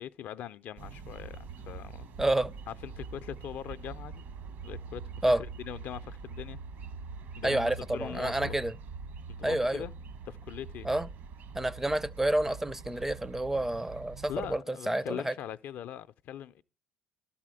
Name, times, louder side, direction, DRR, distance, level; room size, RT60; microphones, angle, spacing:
voice 1, 0.0-2.1 2.7-4.2 4.6-6.6 7.4-8.5 9.3-9.9 10.3-10.9 14.3-16.6, left 10 dB, 60° left, 0.4 m, -41 dB
sound 1, 0.8-14.6, right 4 dB, 65° right, 1.2 m, -44 dB
voice 2, 2.2-2.5 5.2-5.4 7.4-8.7 9.4-9.8 10.8-11.1 11.5-14.6 14.9-15.3, right 1 dB, 10° right, 0.4 m, -29 dB
12.0 x 4.2 x 7.6 m
supercardioid pair, 75°, 4 cm